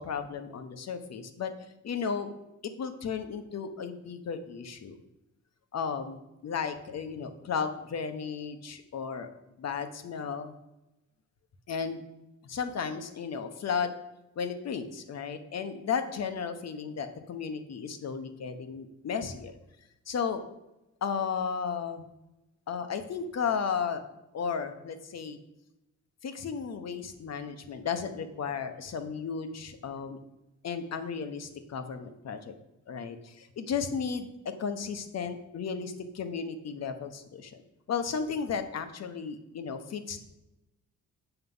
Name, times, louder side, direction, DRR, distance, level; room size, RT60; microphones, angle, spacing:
voice 1, 0.0-1.5 1.8-2.3 2.6-5.0 5.7-9.3 9.6-10.5 11.7-12.0 12.4-13.9 14.4-19.6 20.1-20.4 21.0-22.1 22.7-24.0 24.3-25.4 26.2-30.2 30.6-32.5 32.9-33.2 33.6-37.6 37.9-40.2, left 6 dB, 50° left, 9 dB, 1.1 m, -34 dB
8.1 x 6.4 x 5.5 m, 0.93 s
cardioid pair, 125°, 33 cm